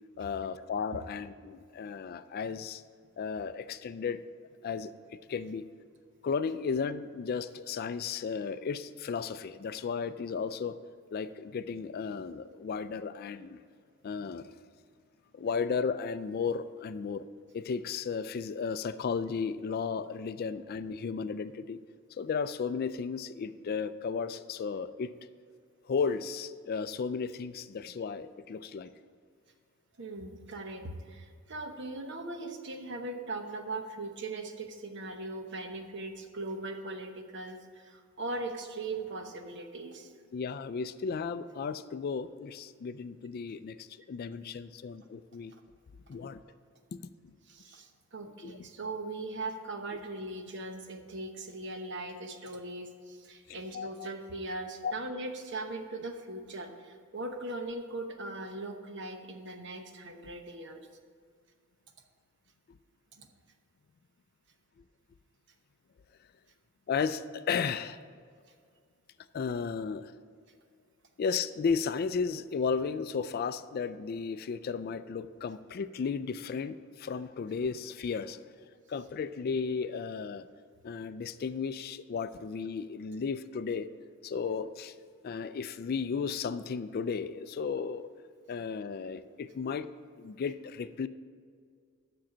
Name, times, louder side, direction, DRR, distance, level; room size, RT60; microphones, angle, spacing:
voice 1, 0.2-2.8 3.2-4.2 4.6-4.9 5.3-5.7 6.2-10.8 11.1-13.6 14.0-14.5 15.3-17.3 17.5-21.8 22.1-25.1 25.9-28.9 40.3-45.5 46.1-46.4 46.9-47.0 47.2-47.4 48.4-48.6 49.9-50.0 53.5-54.1 54.8-54.9 62.7-62.8 66.9-68.0 69.3-70.1 71.2-78.4 78.9-80.5 80.8-83.9 84.2-84.9 85.2-88.1 88.5-89.9 90.2-91.1, left 5 dB, 45° left, 13 dB, 0.3 m, -34 dB
voice 2, 30.0-40.1 47.5-60.8 63.1-63.3, right 2 dB, 55° right, 5 dB, 0.9 m, -39 dB
7.6 x 6.2 x 7.3 m, 2.1 s
head